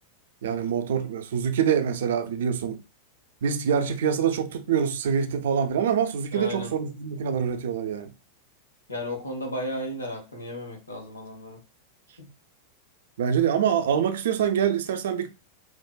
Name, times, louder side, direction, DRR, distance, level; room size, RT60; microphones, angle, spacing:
voice 1, 0.4-2.8 3.4-8.1 13.2-15.3, right 8 dB, 60° right, 0.4 m, -25 dB
voice 2, 6.3-6.7 8.9-11.6 12.2-12.3, left 1 dB, 80° left, 1.0 m, -34 dB
4.5 x 2.1 x 2.3 m
figure-of-eight pair, 90°, 0 cm